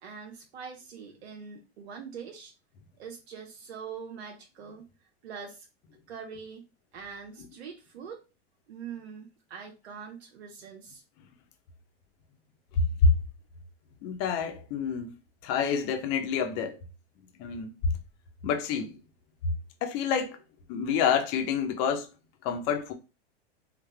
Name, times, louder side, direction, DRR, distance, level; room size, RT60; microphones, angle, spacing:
voice 1, 0.0-2.5 3.0-4.9 5.2-5.7 6.1-6.7 6.9-8.2 8.7-11.0, right 6 dB, 80° right, 0.9 m, -43 dB
voice 2, 12.8-13.1 14.0-15.1 15.4-16.8 17.4-17.7 18.4-18.9 19.8-20.4 20.7-22.1 22.4-22.9, left 5 dB, 50° left, 1.0 m, -27 dB
4.0 x 2.5 x 3.3 m
hypercardioid pair, 105°, 32 cm